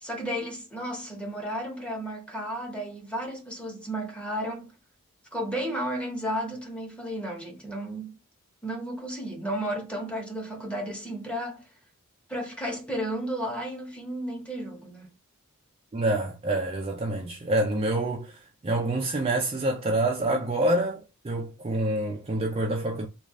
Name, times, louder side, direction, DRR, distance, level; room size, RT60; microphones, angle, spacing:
voice 1, 0.0-4.7 5.3-8.2 8.6-11.6 12.3-15.1, equal, 5° left, 0.9 m, -33 dB
voice 2, 15.9-23.1, right 1 dB, 25° right, 0.4 m, -27 dB
3.2 x 2.4 x 3.5 m
head